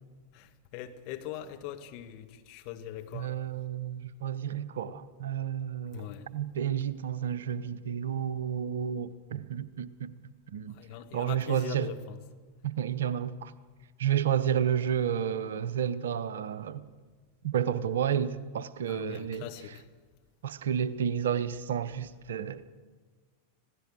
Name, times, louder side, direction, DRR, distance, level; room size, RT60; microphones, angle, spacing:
voice 1, 0.3-3.4 5.9-6.3 10.7-12.2 18.9-19.8, left 11 dB, 45° left, 1.5 m, -42 dB
voice 2, 3.1-10.1 10.5-10.8 11.1-11.9 12.6-13.5 14.0-16.8 17.4-19.5 20.4-22.7, right 9 dB, 60° right, 0.8 m, -31 dB
25.5 x 16.5 x 6.4 m
figure-of-eight pair, 90°, 0 cm